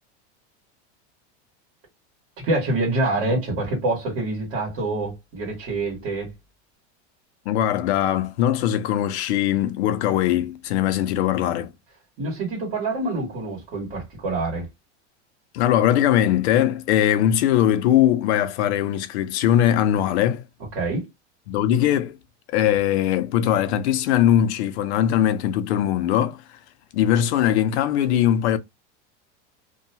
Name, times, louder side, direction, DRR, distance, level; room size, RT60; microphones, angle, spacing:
voice 1, 2.4-6.3 12.2-14.7 20.7-21.1, right 2 dB, 40° right, 1.5 m, -26 dB
voice 2, 7.5-11.7 15.5-20.4 21.5-22.1 22.5-26.4 26.9-28.6, left 11 dB, 70° left, 0.6 m, -20 dB
2.7 x 2.2 x 2.7 m
supercardioid pair, 170°, 35 cm